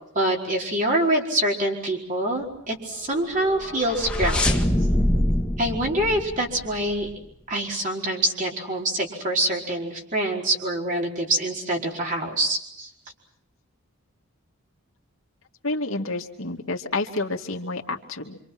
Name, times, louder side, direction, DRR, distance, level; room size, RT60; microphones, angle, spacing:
voice 1, 0.1-4.7 5.6-7.1 7.5-12.9, right 1 dB, 40° right, -1 dB, 4.8 m, -25 dB
sound 1, 3.5-7.1, left 1 dB, 5° left, 1.8 m, -24 dB
voice 2, 15.6-18.4, left 2 dB, 75° left, 2 dB, 2.4 m, -29 dB
27.0 x 26.0 x 6.1 m, 0.70 s
head